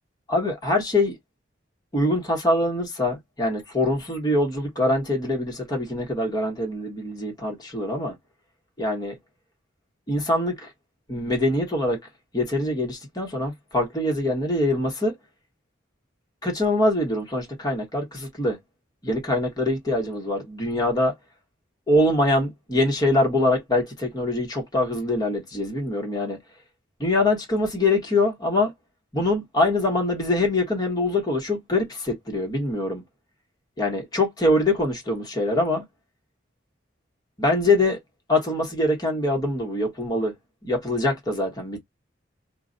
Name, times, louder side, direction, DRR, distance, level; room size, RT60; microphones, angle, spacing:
voice 1, 0.3-1.1 1.9-8.1 8.8-9.1 10.1-10.7 11.1-12.0 12.3-15.1 16.4-18.6 19.0-21.1 21.9-26.4 27.0-28.7 29.1-33.0 33.8-35.8 37.4-38.0 38.3-40.3 40.6-41.8, left 2 dB, 20° left, 1.0 m, -24 dB
2.3 x 2.1 x 3.7 m
head